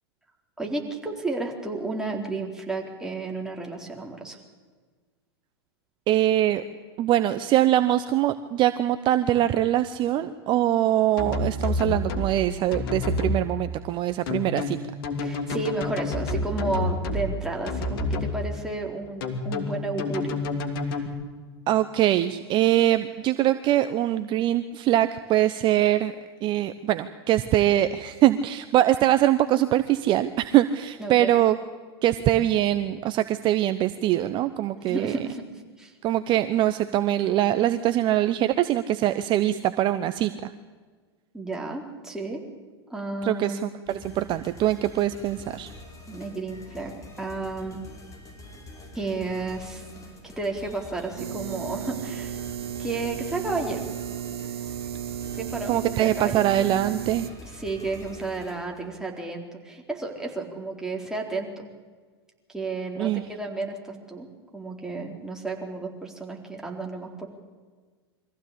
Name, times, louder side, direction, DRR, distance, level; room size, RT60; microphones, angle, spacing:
voice 1, 0.6-4.4 15.2-20.4 20.9-21.1 31.0-31.3 34.9-35.9 41.3-42.4 42.9-43.6 46.1-47.9 48.9-49.9 50.2-52.4 52.8-53.8 55.3-56.4 57.4-61.6 62.5-64.3 64.5-67.3, right 3 dB, 5° right, -1 dB, 4.1 m, -32 dB
voice 2, 6.1-6.6 7.0-14.8 21.7-26.1 26.4-31.6 32.0-35.2 36.0-40.5 43.2-45.7 55.7-57.3 63.0-63.2, right 13 dB, 35° right, 12 dB, 0.9 m, -23 dB
sound 1, 11.2-12.3 12.7-13.4 14.3-17.3 17.7-18.3 19.2-21.1, left 2 dB, 60° left, 2.9 m, -28 dB
sound 2, 43.8-58.9, left 1 dB, 25° left, 5.3 m, -45 dB
sound 3, 51.2-57.3, right 10 dB, 75° right, 0.7 m, -34 dB
23.5 x 15.5 x 8.6 m, 1.5 s
hypercardioid pair, 100°, 14 cm